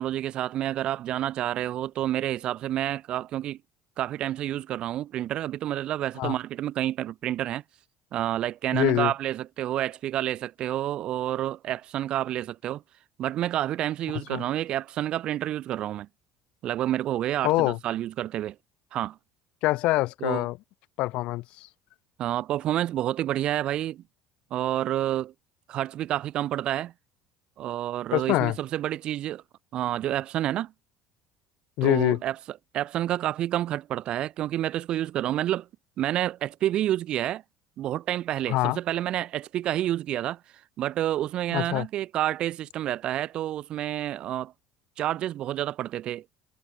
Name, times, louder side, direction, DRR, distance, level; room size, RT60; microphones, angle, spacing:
voice 1, 0.0-3.6 4.0-7.6 8.1-12.8 13.2-16.1 16.6-18.6 18.9-19.2 20.2-20.5 22.2-24.0 24.5-25.3 25.7-26.9 27.6-29.4 29.7-30.7 31.8-32.4 32.7-35.7 36.0-37.4 37.8-40.4 40.8-44.5 45.0-46.2, right 12 dB, 50° right, 3.9 m, -29 dB
voice 2, 8.7-9.1 14.1-14.4 17.4-17.8 19.6-20.6 21.0-21.7 28.1-28.6 31.8-32.2 38.5-38.8 41.5-41.9, left 19 dB, 65° left, 2.8 m, -25 dB
cardioid pair, 120°, 2 cm